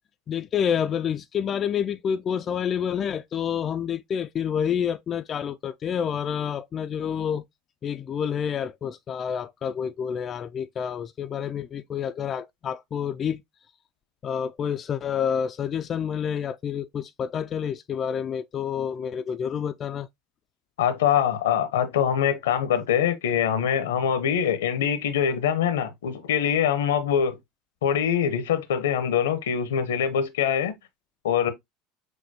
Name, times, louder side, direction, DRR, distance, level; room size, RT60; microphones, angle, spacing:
voice 1, 0.3-7.4 7.8-13.4 14.2-20.1, left 8 dB, 40° left, 0.3 m, -28 dB
voice 2, 20.8-27.4 27.8-30.7 31.2-31.5, left 8 dB, 75° left, 0.7 m, -24 dB
6.5 x 2.2 x 2.7 m
hypercardioid pair, 75°, 0 cm